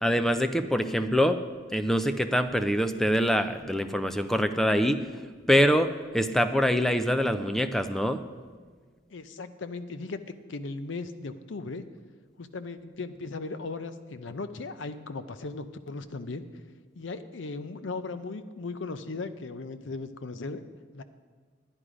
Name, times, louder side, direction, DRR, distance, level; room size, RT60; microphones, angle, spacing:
voice 1, 0.0-1.4 1.7-5.0 5.5-8.2, equal, ahead, 8 dB, 0.4 m, -24 dB
voice 2, 9.1-11.8 12.4-16.5 17.0-20.6 20.9-21.0, left 3 dB, 75° left, 11 dB, 0.6 m, -37 dB
11.0 x 9.9 x 5.0 m, 1.5 s
head